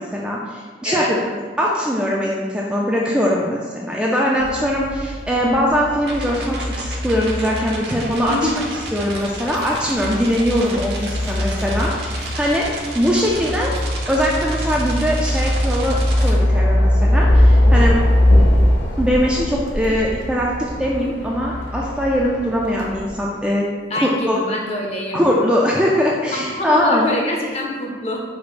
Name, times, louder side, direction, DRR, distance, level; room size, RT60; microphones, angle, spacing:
voice 1, 0.0-8.4 8.9-13.7 14.1-18.0 19.0-23.7 24.0-24.4 25.1-27.1, equal, 5° right, -4 dB, 0.3 m, -21 dB
sound 1, 4.4-23.1, left 1 dB, 80° left, 0.9 m, -21 dB
sound 2, 6.1-16.3, right 2 dB, 65° right, 0.7 m, -33 dB
voice 2, 8.3-8.6 23.9-25.2 26.3-28.2, left 1 dB, 35° left, -1 dB, 0.7 m, -25 dB
5.0 x 2.1 x 4.8 m, 1.5 s
head